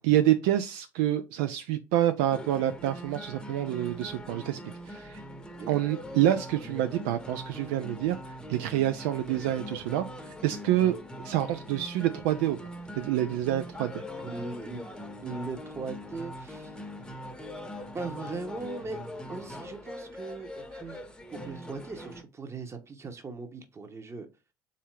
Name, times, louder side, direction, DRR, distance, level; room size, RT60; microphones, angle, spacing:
voice 1, 0.0-4.6 4.9-5.2 5.7-11.0 11.2-12.6 13.0-14.0, right 12 dB, 70° right, 0.4 m, -27 dB
sound 1, 2.3-22.2, left 1 dB, 10° left, 0.9 m, -42 dB
voice 2, 14.2-14.8 15.2-16.7 17.9-19.0 19.3-21.0 21.3-24.3, right 3 dB, 25° right, 1.0 m, -39 dB
3.6 x 2.8 x 4.7 m
hypercardioid pair, 60°, 10 cm